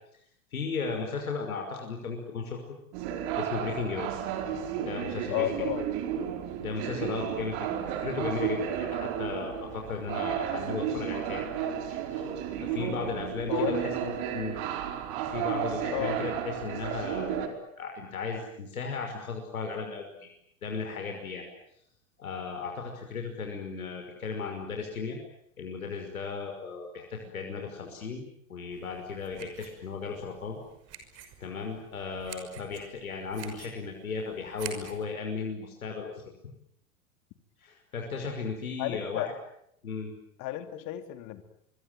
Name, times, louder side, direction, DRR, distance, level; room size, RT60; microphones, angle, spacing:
voice 1, 0.5-2.6 3.4-4.1 4.8-5.5 6.6-12.3 12.6-13.7 14.0-14.6 15.3-20.3 20.6-21.5 22.2-25.2 25.6-28.2 28.5-30.6 31.4-36.5 37.6-39.3 39.8-40.1, left 5 dB, 85° left, 3 dB, 5.6 m, -36 dB
Train Platform with Dated Announcement (pandemic era), 2.9-17.5, right 9 dB, 50° right, 4.8 m, -33 dB
voice 2, 5.3-5.9 13.5-13.9 15.9-16.2 38.8-39.3 40.4-41.4, left 14 dB, 45° left, 10 dB, 2.9 m, -32 dB
sound 1, 28.7-35.0, right 8 dB, 35° right, 6.0 m, -48 dB
25.5 x 23.5 x 9.4 m, 0.72 s
hypercardioid pair, 100°, 42 cm